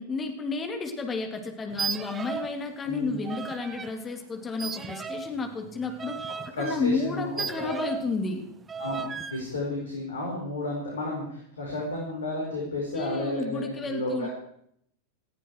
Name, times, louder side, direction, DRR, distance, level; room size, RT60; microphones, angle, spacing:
voice 1, 0.0-6.2 6.6-8.4 12.9-14.3, left 3 dB, 20° left, 5 dB, 3.1 m, -31 dB
sound 1, 1.7-2.6 2.9-3.9 4.6-8.2 8.7-9.4, right 6 dB, 20° right, 0.9 m, -36 dB
voice 2, 2.9-3.2 6.5-7.9 8.8-14.3, left 2 dB, 70° left, -1 dB, 4.9 m, -32 dB
19.5 x 14.5 x 4.8 m, 0.70 s
figure-of-eight pair, 90°, 0 cm